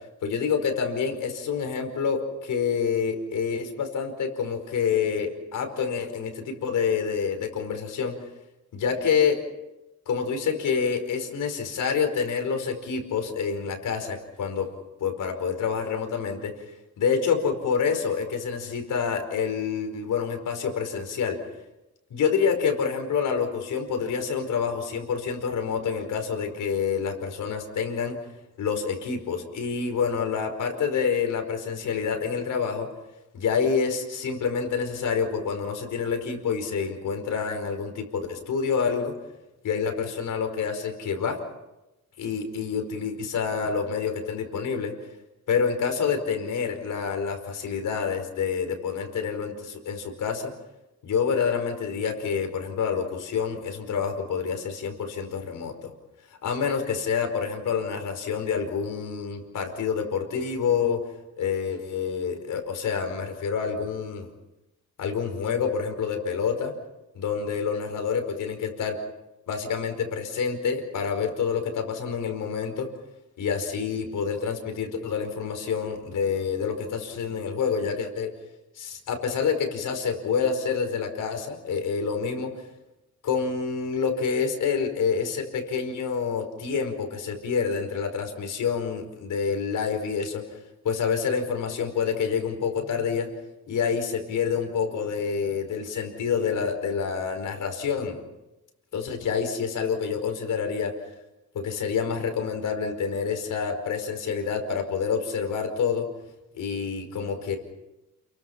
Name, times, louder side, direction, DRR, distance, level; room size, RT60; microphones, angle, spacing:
voice 1, 0.2-8.2 8.7-9.4 10.1-14.7 15.0-16.5 17.0-21.4 22.1-28.2 28.6-32.9 33.3-39.1 39.6-41.4 42.2-44.9 45.5-50.5 51.0-55.9 56.4-61.0 61.4-64.3 65.0-66.7 67.1-68.9 69.5-72.9 73.4-78.3 78.7-82.5 83.2-90.4 90.8-93.3 93.7-98.2 98.9-100.9 101.5-106.1 106.5-107.6, left 6 dB, 85° left, 4 dB, 5.1 m, -27 dB
29.5 x 23.0 x 5.8 m, 0.98 s
cardioid pair, 110°, 30 cm